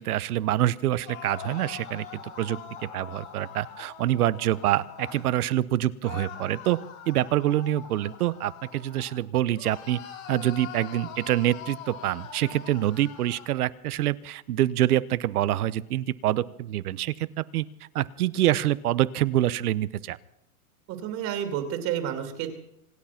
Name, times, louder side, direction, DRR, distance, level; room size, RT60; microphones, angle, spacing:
voice 1, 0.0-6.8 7.1-10.0 10.3-17.6 17.9-20.2, right 13 dB, 80° right, 18 dB, 1.0 m, -26 dB
sound 1, 0.9-5.3 6.0-9.2 9.5-13.5, left 9 dB, 65° left, 5.3 m, -43 dB
voice 2, 20.9-22.5, right 9 dB, 40° right, 7 dB, 2.6 m, -30 dB
26.0 x 9.2 x 5.8 m, 0.76 s
supercardioid pair, 150°, 44 cm